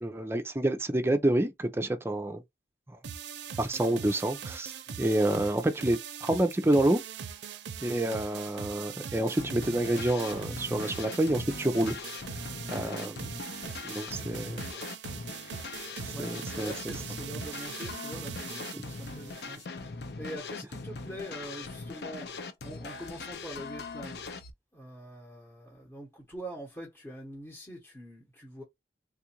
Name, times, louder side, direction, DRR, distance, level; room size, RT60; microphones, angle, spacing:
voice 1, 0.0-2.4 2.9-3.0 3.6-4.7 5.0-7.0 7.8-12.0 12.7-13.3 13.8-14.6 16.0-16.7, right 1 dB, 15° right, 0.5 m, -28 dB
sound 1, 3.0-19.6, right 7 dB, 80° right, 0.5 m, -41 dB
sound 2, 9.4-24.5, left 4 dB, 65° left, 0.6 m, -41 dB
voice 2, 16.1-22.3 22.6-24.2 24.7-28.6, right 1 dB, 15° left, 1.0 m, -44 dB
3.5 x 2.5 x 2.9 m
head